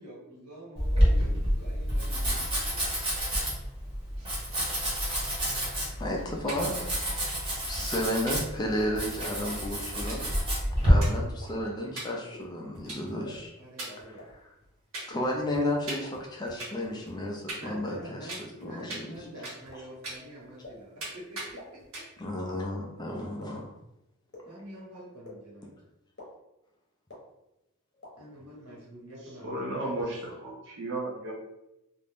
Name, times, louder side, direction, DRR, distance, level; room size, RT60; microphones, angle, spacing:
voice 1, 0.0-2.5 13.6-14.2 17.6-22.0 24.5-25.7 28.2-30.1, right 1 dB, 90° right, -5 dB, 1.2 m, -46 dB
Domestic sounds home sounds, 0.8-10.9, equal, 25° right, 0.8 m, -28 dB
voice 2, 5.4-6.8 7.6-10.3 10.9-13.5 14.1-14.5 15.1-19.3 22.2-23.7, left 1 dB, 20° left, -1 dB, 0.3 m, -33 dB
sound 1, 6.0-6.5 6.8-6.9 7.1-7.3 7.7-7.9 8.3-8.4 8.7-8.8 9.1-9.8 10.1-10.2 10.6-10.7 11.0-11.6 12.0-12.1 12.4-13.5 13.8-14.7 14.9-15.3 15.5-17.2 17.5-18.0 18.3-19.8 20.0-20.7 21.0-21.1 21.4-21.5 21.8-22.3, right 2 dB, 70° right, 1.1 m, -41 dB
sound 2, 11.4-11.5 12.3-12.4 13.2-13.3 14.2-14.3 15.1-15.2 16.0-16.1 16.9-17.0 17.9-18.0 18.8-18.9 19.7-19.8 20.6-20.7 21.6-21.7 22.5-22.6 23.4-23.5 24.3-24.4 25.2-25.3 26.2-26.3 27.1-27.2 28.0-28.1, left 2 dB, 45° left, 0.8 m, -45 dB
voice 3, 29.4-31.3, right 1 dB, 50° right, -3 dB, 0.5 m, -34 dB
2.5 x 2.1 x 3.3 m, 0.88 s
head